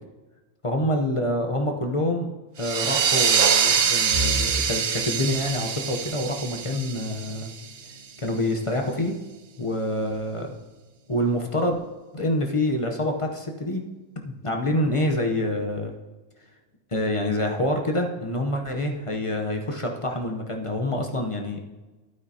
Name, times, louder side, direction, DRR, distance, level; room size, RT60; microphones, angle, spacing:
voice 1, 0.6-2.3 2.6-7.5 8.2-9.2 9.6-10.5 11.1-11.8 12.1-13.9 14.4-15.9 16.9-21.7, left 1 dB, 30° left, 2 dB, 0.7 m, -26 dB
sound 1, 2.6-7.9, right 7 dB, 65° right, 0.5 m, -24 dB
sound 2, 4.1-16.0 16.4-16.6 17.0-17.2 18.1-18.5, right 1 dB, 40° right, 1.7 m, -40 dB
11.5 x 9.3 x 2.8 m, 1.2 s
omnidirectional pair, 1.5 m